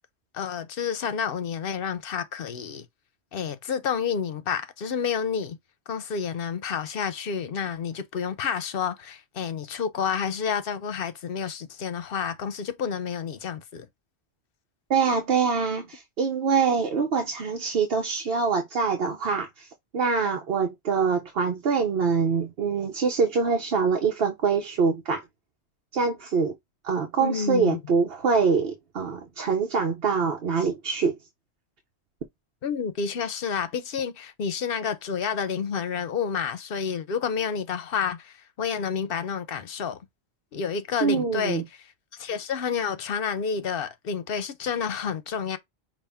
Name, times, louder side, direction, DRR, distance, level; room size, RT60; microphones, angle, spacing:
voice 1, 0.3-2.8 3.3-5.6 5.9-13.9 27.2-27.8 32.6-40.0 40.5-41.6 42.1-45.6, left 6 dB, 60° left, 0.9 m, -29 dB
voice 2, 14.9-19.7 19.9-25.2 25.9-26.5 26.8-31.2 41.0-41.6, right 5 dB, 65° right, 1.0 m, -24 dB
5.5 x 2.5 x 3.5 m
omnidirectional pair, 1.1 m